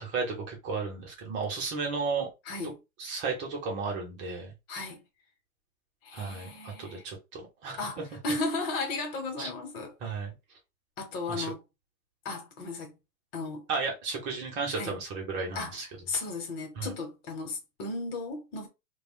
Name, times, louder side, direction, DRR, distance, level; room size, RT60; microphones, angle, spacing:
voice 1, 0.0-2.3 3.0-4.5 6.1-7.9 9.4-9.5 10.0-10.3 11.3-11.5 13.7-15.9 16.8-16.9, right 4 dB, 25° right, 1.0 m, -34 dB
voice 2, 2.4-2.8 4.7-5.0 6.0-7.0 7.8-10.1 11.0-11.6 12.2-13.0 13.3-13.7 14.7-15.0 15.5-15.8 16.1-18.7, left 3 dB, 45° left, 1.2 m, -35 dB
3.3 x 2.4 x 2.3 m
hypercardioid pair, 125°, 42 cm